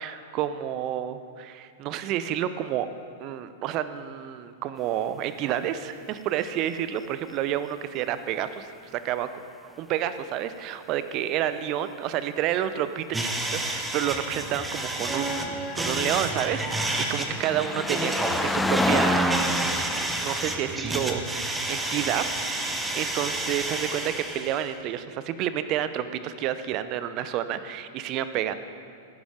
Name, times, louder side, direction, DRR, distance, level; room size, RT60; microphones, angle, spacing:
voice 1, 0.0-2.9 3.2-9.3 9.8-13.0 13.5-19.5 20.2-22.3 22.7-28.5, right 11 dB, 40° right, 12 dB, 0.7 m, -29 dB
sound 1, 13.1-24.7, right 1 dB, 10° right, 1.4 m, -30 dB
sound 2, 15.9-22.6 23.5-23.6, left 1 dB, 5° left, 0.5 m, -30 dB
14.5 x 10.5 x 5.1 m, 2.4 s
figure-of-eight pair, 100°, 0 cm